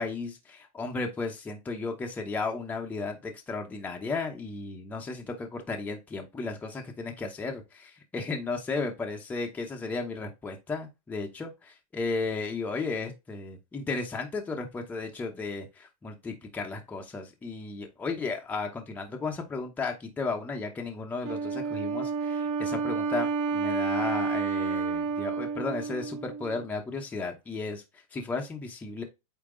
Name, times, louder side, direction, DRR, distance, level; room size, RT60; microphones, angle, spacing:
voice 1, 0.0-29.0, left 3 dB, 10° left, 0.9 m, -34 dB
Wind instrument woodwind instrument, 21.2-26.6, right 5 dB, 35° right, 1.1 m, -30 dB
8.6 x 2.9 x 3.8 m
supercardioid pair, 160°, 19 cm